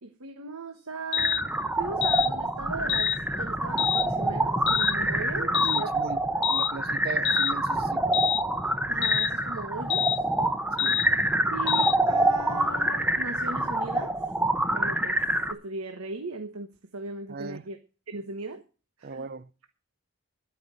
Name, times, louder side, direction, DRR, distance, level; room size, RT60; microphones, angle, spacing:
voice 1, 0.0-1.5 1.8-6.0 6.3-6.4 8.9-10.1 11.5-14.2 14.7-17.8 18.1-18.6 19.0-19.3, right 3 dB, 80° right, 1.3 m, -38 dB
sound 1, 1.1-1.4 2.0-2.3 2.9-3.2 3.8-4.1 4.7-4.9 5.5-5.8 6.4-6.7 7.2-7.5 8.1-8.4 9.0-9.3 9.9-10.2 10.8-11.1 11.7-12.0, left 11 dB, 55° left, 0.5 m, -26 dB
sound 2, 1.2-15.5, right 1 dB, 5° right, 0.8 m, -26 dB
voice 2, 5.4-8.1 10.8-11.1 17.3-17.6 19.0-19.5, right 4 dB, 45° right, 0.5 m, -38 dB
11.0 x 9.6 x 6.4 m
head